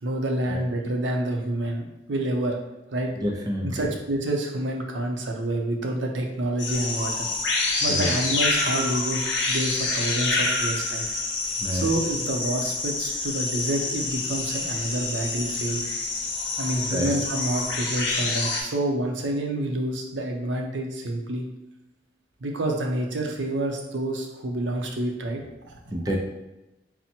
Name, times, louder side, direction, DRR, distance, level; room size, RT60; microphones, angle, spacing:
voice 1, 0.0-2.6 2.9-3.1 3.6-7.3 7.8-9.2 9.5-11.0 11.7-15.8 16.6-21.5 22.4-26.0, right 1 dB, 85° right, 2 dB, 0.6 m, -28 dB
voice 2, 3.2-3.9 7.9-8.1 11.6-11.9 16.9-17.1 25.9-26.2, equal, 20° right, 0 dB, 0.4 m, -28 dB
sound 1, 6.6-18.6, left 3 dB, 75° left, 0.8 m, -27 dB
4.2 x 2.1 x 4.2 m, 0.97 s
head